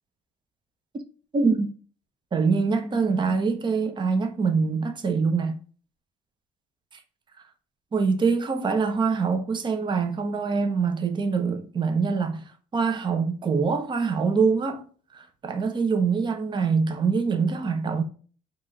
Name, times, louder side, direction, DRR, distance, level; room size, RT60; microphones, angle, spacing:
voice 1, 1.3-1.7 2.3-5.6 7.9-12.4 12.7-14.8 15.1-18.0, right 5 dB, 25° right, 0.7 m, -24 dB
4.8 x 2.5 x 4.0 m
cardioid pair, 110°, 17 cm